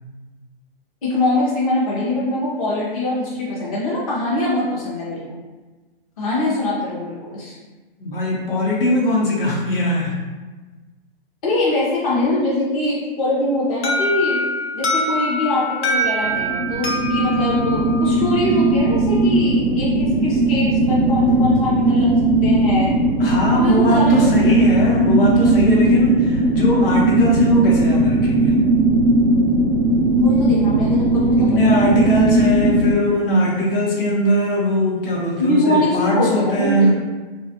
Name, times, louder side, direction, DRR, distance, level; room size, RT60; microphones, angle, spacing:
voice 1, 1.0-5.2 6.2-7.5 11.4-14.4 14.7-22.1 22.4-22.9 23.5-24.5 30.1-32.2 35.4-37.0, left 2 dB, 35° left, -7 dB, 0.5 m, -23 dB
voice 2, 8.0-10.2 23.2-28.6 31.4-36.9, left 1 dB, 60° left, -3 dB, 0.8 m, -20 dB
Alarm, 13.8-18.6, left 1 dB, 90° left, 0.7 m, -24 dB
sound 1, 16.2-32.9, right 2 dB, 80° right, 0.5 m, -17 dB
2.5 x 2.3 x 2.6 m, 1.2 s
hypercardioid pair, 165°, 31 cm